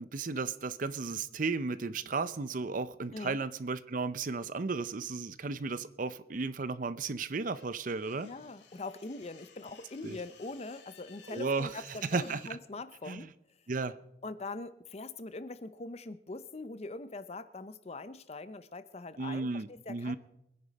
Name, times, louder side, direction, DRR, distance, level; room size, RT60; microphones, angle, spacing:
voice 1, 0.0-8.3 10.0-10.2 11.3-12.4 13.1-13.3 13.7-14.0 19.2-20.2, right 4 dB, 45° right, 15 dB, 0.6 m, -34 dB
sound 1, 7.5-12.5, left 7 dB, 70° left, 1.8 m, -58 dB
voice 2, 8.2-13.3 14.2-20.2, left 3 dB, 35° left, 13 dB, 0.6 m, -42 dB
23.5 x 10.0 x 4.1 m, 0.84 s
head